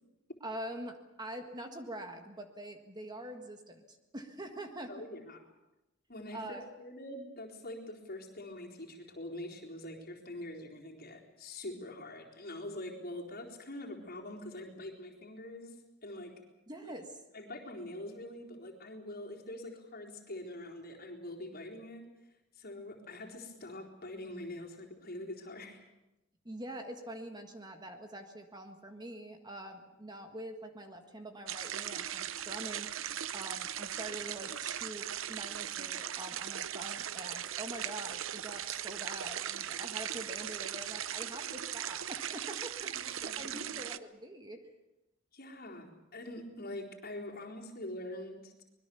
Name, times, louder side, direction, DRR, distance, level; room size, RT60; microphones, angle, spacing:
voice 1, 0.4-4.9 6.3-6.7 16.7-17.1 26.4-32.9 33.3-44.6, right 1 dB, 20° right, 5 dB, 1.7 m, -45 dB
voice 2, 4.9-5.4 6.1-16.4 16.8-16.9 17.3-22.1 22.6-25.8 43.1-43.7 45.3-48.6, left 1 dB, 50° left, 0 dB, 4.1 m, -44 dB
sound 1, 31.5-44.0, right 10 dB, 75° right, 0.7 m, -39 dB
25.0 x 21.0 x 7.0 m, 0.95 s
head